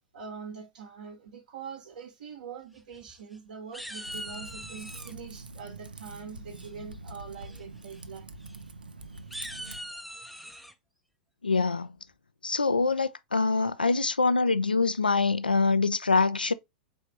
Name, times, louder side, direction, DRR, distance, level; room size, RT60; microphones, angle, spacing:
voice 1, 0.1-8.3, right 6 dB, 60° right, 0.9 m, -43 dB
sound 1, 2.8-3.4 3.7-5.1 6.6-7.0 7.4-7.6 7.9-8.0 8.4-8.5 9.1-10.7, equal, ahead, 0.5 m, -42 dB
Typing, 4.0-9.8, right 3 dB, 75° right, 0.5 m, -45 dB
voice 2, 11.4-11.9 12.4-16.5, left 4 dB, 80° left, 0.4 m, -24 dB
4.4 x 3.3 x 2.9 m
figure-of-eight pair, 95°, 5 cm